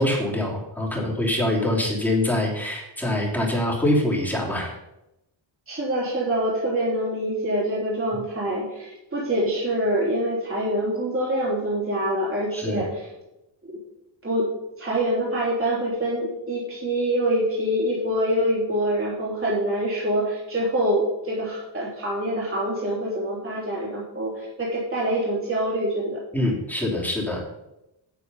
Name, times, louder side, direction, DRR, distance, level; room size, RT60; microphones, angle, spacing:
voice 1, 0.0-4.8 12.5-12.8 26.3-27.4, left 1 dB, 5° left, -3 dB, 3.0 m, -24 dB
voice 2, 5.7-12.9 13.6-13.7 14.2-14.5 14.8-26.2 26.5-26.6, right 1 dB, 30° right, -6 dB, 3.3 m, -25 dB
8.1 x 7.7 x 5.5 m, 0.92 s
cardioid pair, 105°, 45 cm